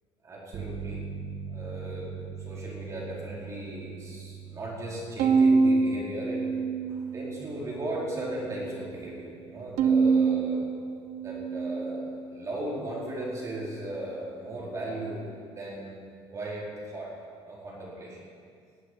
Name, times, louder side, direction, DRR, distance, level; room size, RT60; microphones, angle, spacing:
voice 1, 0.2-1.0 1.5-2.1 2.4-6.4 6.9-10.6 11.2-15.2 15.5-16.1 16.3-17.1 17.4-18.2, right 1 dB, 30° right, -5 dB, 4.5 m, -37 dB
sound 1, 0.5-11.1, right 6 dB, 50° right, 1.9 m, -43 dB
Bowed string instrument, 5.2-7.6 8.0-8.8 9.8-12.3, right 4 dB, 85° right, 1.0 m, -26 dB
16.5 x 8.5 x 9.7 m, 2.2 s
cardioid pair, 150°, 10 cm